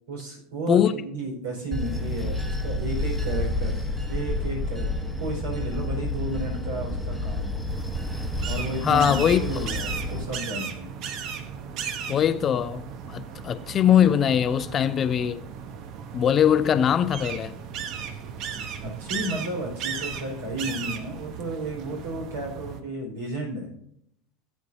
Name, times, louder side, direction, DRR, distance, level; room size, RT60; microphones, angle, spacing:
voice 1, 0.1-7.6 8.5-10.9 18.5-23.7, right 1 dB, 65° right, 4.6 m, -33 dB
Bell / Train, 1.7-10.2, left 1 dB, 5° right, 1.2 m, -29 dB
sound 1, 7.7-22.8, right 7 dB, 50° right, 1.0 m, -36 dB
voice 2, 8.8-9.4 12.1-15.4 16.1-17.5, left 9 dB, 35° left, 0.5 m, -21 dB
16.5 x 9.3 x 2.7 m
figure-of-eight pair, 80°, 0 cm